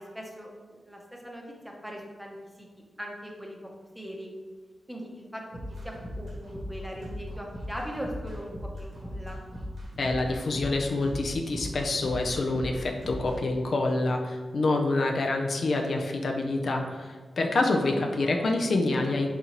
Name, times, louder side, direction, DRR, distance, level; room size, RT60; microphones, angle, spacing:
voice 1, 0.0-1.4 1.8-3.6 3.9-4.3 4.9-5.4 5.8-9.4 17.7-17.9 18.2-18.4, equal, 5° right, 0 dB, 0.7 m, -40 dB
sound 1, 5.5-13.4, equal, 85° right, 1.4 m, -38 dB
voice 2, 10.0-19.3, left 2 dB, 65° left, 2 dB, 0.4 m, -27 dB
4.1 x 3.7 x 2.9 m, 1.4 s
wide cardioid pair, 95°, 0 cm